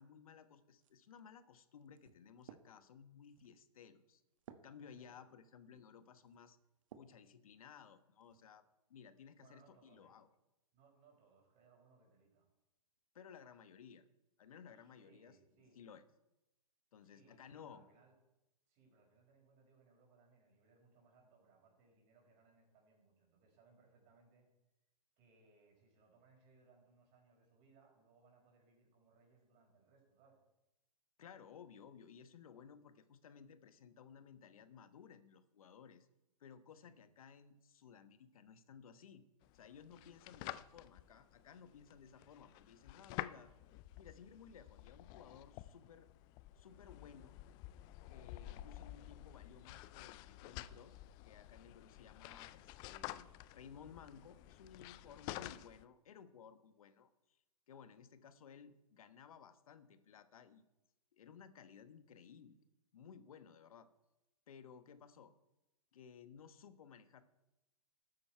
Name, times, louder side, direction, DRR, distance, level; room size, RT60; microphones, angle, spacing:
voice 1, 0.0-4.2 4.6-6.6 7.0-8.6 8.9-10.3 13.1-14.0 14.4-15.4 15.7-16.0 16.9-17.8 31.2-36.1 36.4-39.2 39.5-43.5 44.0-46.1 46.5-47.3 48.1-57.4 57.7-60.7 61.1-62.6 62.9-63.9 64.5-65.3 65.9-67.2, left 7 dB, 65° left, 12 dB, 1.2 m, -58 dB
sound 1, 0.8-7.2 7.8-8.4, right 8 dB, 55° right, 1.1 m, -62 dB
voice 2, 9.4-10.2 10.7-12.5 14.7-15.8 17.0-18.1 18.7-24.5 25.2-30.4 36.8-37.0, right 4 dB, 35° right, 0 dB, 5.2 m, -69 dB
sound 2, 39.4-55.8, left 15 dB, 20° left, 0.3 m, -51 dB
13.0 x 9.5 x 4.5 m, 0.95 s
hypercardioid pair, 125°, 20 cm